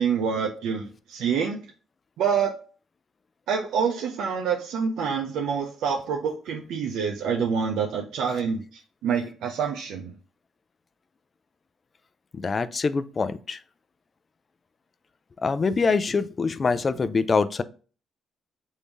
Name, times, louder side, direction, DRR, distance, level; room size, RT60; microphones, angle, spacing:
voice 1, 0.0-1.6 2.2-2.5 3.5-8.6 9.0-10.1, right 6 dB, 85° right, 0.5 m, -26 dB
voice 2, 12.3-13.6 15.4-17.6, left 4 dB, 35° left, 0.4 m, -24 dB
3.5 x 2.7 x 4.5 m
cardioid pair, 90°, 0 cm